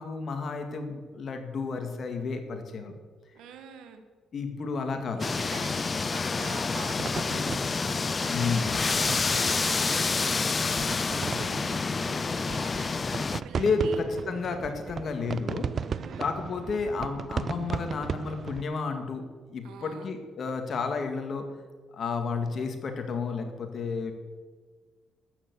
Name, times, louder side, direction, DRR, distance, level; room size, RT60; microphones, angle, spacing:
voice 1, 0.0-2.9 4.3-5.4 8.3-8.7 13.5-15.7 16.2-19.2 19.5-21.5 21.9-24.1, left 4 dB, 50° left, 5 dB, 1.9 m, -31 dB
voice 2, 3.3-4.0 4.9-14.0 15.9-16.3 19.6-20.1, right 7 dB, 85° right, 7 dB, 1.4 m, -46 dB
sound 1, 5.2-13.4, left 4 dB, 30° left, 0.4 m, -28 dB
sound 2, 5.6-18.7, right 6 dB, 50° right, 0.5 m, -37 dB
13.0 x 6.9 x 8.4 m, 1.5 s
cardioid pair, 90°, 0 cm